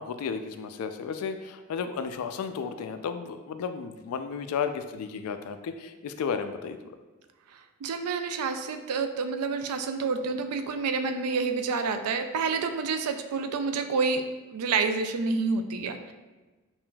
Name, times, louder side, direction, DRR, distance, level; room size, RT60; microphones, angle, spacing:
voice 1, 0.0-6.8, left 6 dB, 80° left, 9 dB, 0.3 m, -33 dB
voice 2, 7.5-14.2 14.5-16.1, right 4 dB, 85° right, 7 dB, 0.4 m, -28 dB
5.6 x 2.5 x 2.2 m, 1.2 s
head